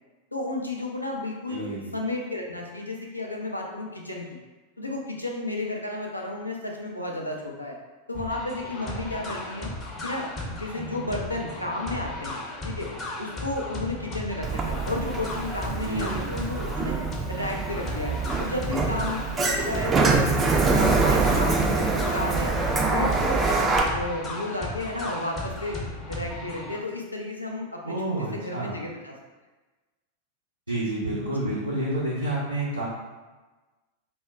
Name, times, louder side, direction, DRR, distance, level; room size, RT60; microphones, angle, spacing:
voice 1, 0.3-4.3 4.8-7.8 8.1-9.7 10.0-12.4 12.6-12.9 13.2-17.0 17.3-22.6 22.9-25.8 26.1-29.1 31.4-31.5, left 2 dB, 85° left, -1 dB, 0.4 m, -32 dB
voice 2, 1.5-1.9 15.8-16.3 27.8-28.8 30.7-32.8, right 1 dB, 85° right, -10 dB, 0.6 m, -29 dB
sound 1, 8.1-26.8, left 1 dB, 25° left, 0.6 m, -36 dB
Sliding door, 14.4-23.8, right 3 dB, 20° right, 0.3 m, -25 dB
2.1 x 2.1 x 3.6 m, 1.2 s
figure-of-eight pair, 90°, 0 cm